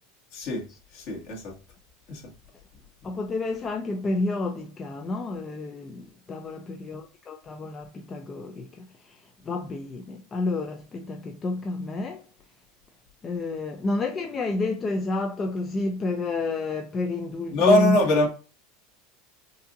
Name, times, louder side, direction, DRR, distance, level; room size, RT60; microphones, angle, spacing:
voice 1, 0.3-1.6 2.1-2.2 3.0-3.1 17.5-18.3, left 1 dB, 50° left, 2.1 m, -23 dB
voice 2, 3.0-12.3 13.2-18.0, left 3 dB, 20° left, 0.4 m, -30 dB
5.3 x 2.7 x 2.6 m
supercardioid pair, 150°, 0 cm